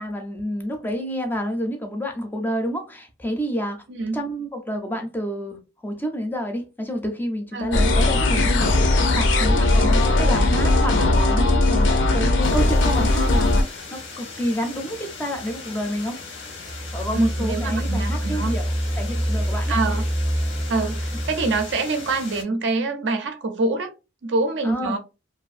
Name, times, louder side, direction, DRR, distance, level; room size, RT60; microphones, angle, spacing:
voice 1, 0.0-3.8 4.1-16.2 16.9-19.8 24.6-25.0, equal, 10° left, 0.4 m, -29 dB
sound 1, 7.7-13.6, left 2 dB, 75° left, 0.5 m, -18 dB
sound 2, 12.4-22.4, left 4 dB, 90° left, 0.9 m, -38 dB
sound 3, 16.7-21.8, equal, 25° right, 0.7 m, -26 dB
voice 2, 17.1-18.6 19.7-20.1 20.7-23.9 24.2-25.0, right 3 dB, 70° right, 0.5 m, -25 dB
2.5 x 2.5 x 2.4 m
head